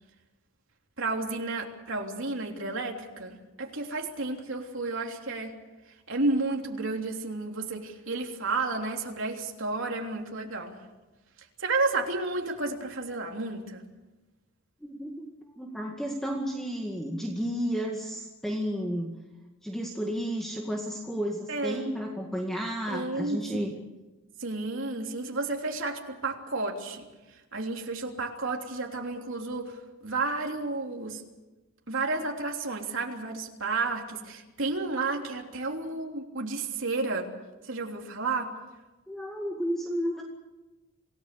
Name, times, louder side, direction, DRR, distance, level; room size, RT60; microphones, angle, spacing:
voice 1, 1.0-5.5 6.1-10.8 11.6-13.8 21.5-21.9 22.9-23.6 24.4-27.1 27.5-29.8 30.0-31.2 31.9-37.3 37.6-38.5, right 3 dB, 60° right, 1 dB, 3.4 m, -31 dB
voice 2, 14.8-15.3 15.6-19.1 19.6-23.7 39.1-40.2, equal, ahead, 0 dB, 2.0 m, -32 dB
27.5 x 17.5 x 6.9 m, 1.1 s
head